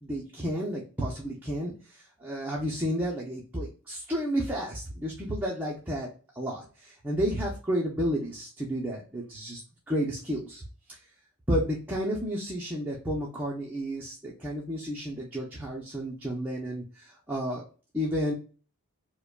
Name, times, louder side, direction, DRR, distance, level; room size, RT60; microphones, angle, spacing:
voice 1, 0.0-6.1 6.4-9.6 9.9-10.6 11.5-17.6 17.9-18.3, equal, 10° right, -4 dB, 0.7 m, -31 dB
5.3 x 2.2 x 2.3 m, 0.37 s
head